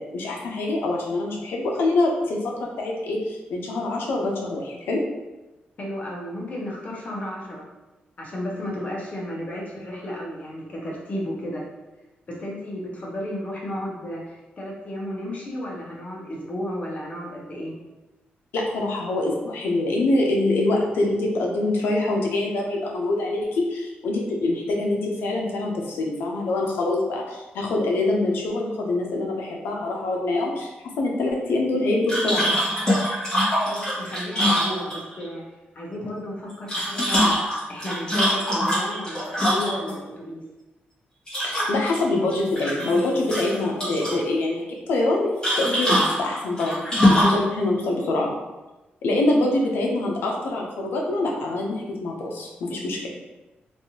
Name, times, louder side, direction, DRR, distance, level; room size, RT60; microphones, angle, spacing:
voice 1, 0.0-5.0 18.5-30.7 31.0-32.5 41.4-45.3 45.6-48.3 49.0-53.0, left 2 dB, 90° left, 0 dB, 0.6 m, -25 dB
voice 2, 5.8-7.7 8.2-11.6 12.3-17.7 33.6-35.4 35.7-37.4 37.7-40.4, equal, 40° left, -3 dB, 0.9 m, -33 dB
sound 1, 32.1-35.2 36.5-39.9 41.3-42.0 42.3-43.0 43.3-44.2 45.4-47.4, equal, 25° left, 1.3 m, -23 dB
3.3 x 2.6 x 2.8 m, 1.1 s
wide cardioid pair, 125°, 4 cm